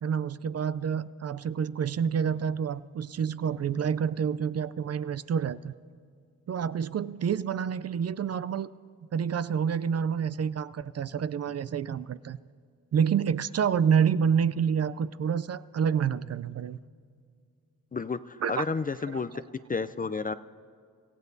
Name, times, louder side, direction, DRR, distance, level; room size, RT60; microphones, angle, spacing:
voice 1, 0.0-5.7 6.5-8.7 9.1-12.4 12.9-16.8 18.4-18.6 19.1-19.2, right 7 dB, 45° right, 15 dB, 0.5 m, -28 dB
voice 2, 17.9-19.3 19.7-20.3, left 4 dB, 25° left, 12 dB, 0.4 m, -31 dB
26.0 x 15.0 x 2.7 m, 2.2 s
cardioid pair, 60°, 36 cm